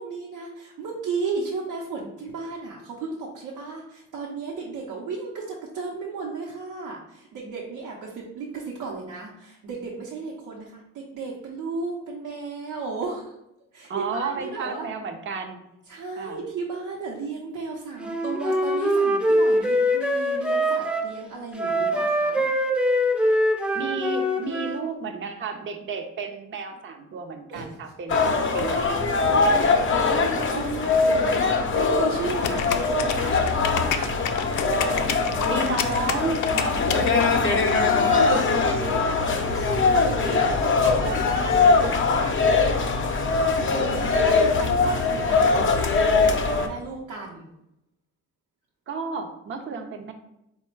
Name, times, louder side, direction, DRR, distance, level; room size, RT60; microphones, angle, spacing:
voice 1, 0.0-13.3 13.7-14.9 15.9-22.5 27.5-27.7 30.0-34.4 37.9-38.9 39.3-40.2 42.4-45.7 46.1-47.5, right 4 dB, 80° right, -4 dB, 0.8 m, -35 dB
voice 2, 13.9-15.6 16.2-16.4 23.7-29.7 32.4-32.7 35.4-39.1 39.9-40.5 41.0-42.3 48.9-50.1, right 4 dB, 40° right, 5 dB, 0.6 m, -33 dB
Wind instrument woodwind instrument, 18.0-21.1 21.6-24.8, equal, 5° right, 0.5 m, -23 dB
sound 1, 28.1-46.7, left 4 dB, 40° left, 0.6 m, -22 dB
sound 2, 32.4-37.8, left 9 dB, 90° left, 0.4 m, -29 dB
4.1 x 2.2 x 4.4 m, 0.83 s
cardioid pair, 90°, 30 cm